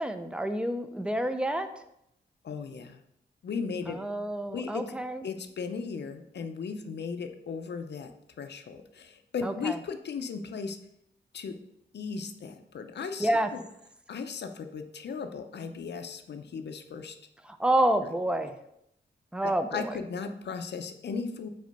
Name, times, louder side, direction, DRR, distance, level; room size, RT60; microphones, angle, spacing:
voice 1, 0.0-1.7 3.9-5.2 9.4-9.8 13.2-13.5 17.5-18.5 19.3-19.9, right 1 dB, 5° right, 8 dB, 0.5 m, -28 dB
voice 2, 2.4-3.0 3.4-4.0 4.5-5.0 5.2-8.1 8.4-10.8 11.3-11.6 11.9-13.6 14.1-17.2 18.0-18.1 19.4-21.5, left 5 dB, 60° left, 7 dB, 0.6 m, -36 dB
5.2 x 4.4 x 5.2 m, 0.78 s
wide cardioid pair, 145°, 20 cm